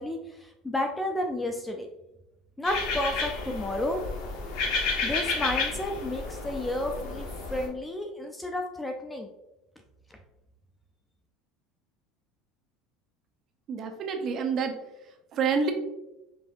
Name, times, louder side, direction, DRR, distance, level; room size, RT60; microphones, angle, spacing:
voice 1, 0.0-1.9 2.6-4.0 4.8-9.3, left 1 dB, 10° left, 3 dB, 0.4 m, -32 dB
sound 1, 2.6-7.7, left 4 dB, 65° left, 1.3 m, -31 dB
voice 2, 13.7-14.8 15.3-15.7, right 5 dB, 45° right, 5 dB, 0.6 m, -27 dB
5.2 x 3.3 x 2.6 m, 0.94 s
supercardioid pair, 125°, 0 cm